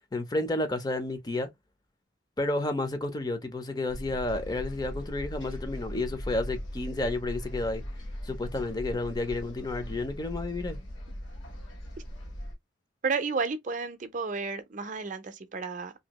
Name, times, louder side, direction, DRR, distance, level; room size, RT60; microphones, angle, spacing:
voice 1, 0.1-1.5 2.4-7.8 8.2-10.8, left 2 dB, 20° left, 0.5 m, -31 dB
sound 1, 3.9-12.5, equal, 90° left, 1.1 m, -39 dB
voice 2, 13.0-15.9, right 4 dB, 40° right, 0.5 m, -32 dB
2.8 x 2.7 x 2.9 m
head